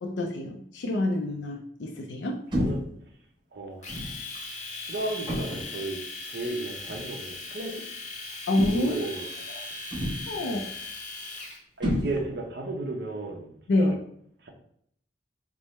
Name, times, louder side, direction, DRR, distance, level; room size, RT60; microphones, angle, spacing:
voice 1, 0.0-2.4 8.5-8.9 9.5-9.6 10.3-10.6 13.7-14.0, left 2 dB, 75° left, 2 dB, 0.4 m, -27 dB
sound 1, 2.5-3.0 3.9-4.2 5.3-5.8 6.9-7.1 8.6-9.1 9.9-10.4 11.8-12.5, equal, 25° right, 0.7 m, -30 dB
voice 2, 3.5-4.0 4.8-6.0 6.3-7.8 8.7-9.3 10.4-10.7 11.8-13.9 14.4-14.5, right 2 dB, 60° right, 1 dB, 0.7 m, -34 dB
Domestic sounds home sounds, 3.8-11.6, left 3 dB, 40° left, 0.7 m, -39 dB
3.5 x 2.0 x 4.1 m, 0.68 s
head